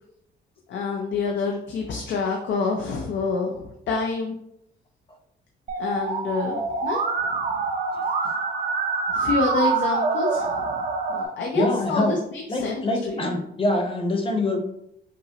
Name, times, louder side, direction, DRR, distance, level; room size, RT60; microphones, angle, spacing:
voice 1, 0.7-4.3 5.8-7.0 9.1-13.2, left 4 dB, 70° left, 1 dB, 0.6 m, -28 dB
Musical instrument, 5.7-11.2, right 4 dB, 45° right, 0.6 m, -25 dB
voice 2, 11.5-12.2 12.5-14.6, left 2 dB, 25° left, 3 dB, 0.9 m, -24 dB
5.2 x 2.0 x 2.8 m, 0.77 s
cardioid pair, 90°, 20 cm